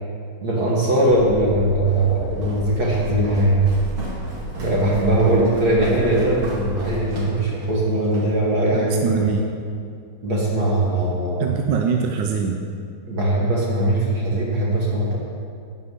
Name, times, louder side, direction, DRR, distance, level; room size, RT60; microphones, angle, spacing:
voice 1, 0.4-3.6 4.6-9.4 10.2-11.5 13.1-15.2, right 1 dB, 50° right, -5 dB, 2.0 m, -20 dB
sound 1, 1.1-6.9, right 2 dB, 35° right, 2.7 m, -33 dB
Walk footsteps, 1.9-8.3, equal, 85° right, 2.9 m, -38 dB
voice 2, 5.2-5.6 8.7-9.5 11.4-12.6, right 6 dB, 70° right, 2 dB, 1.3 m, -23 dB
11.0 x 5.4 x 8.1 m, 2.3 s
omnidirectional pair, 2.2 m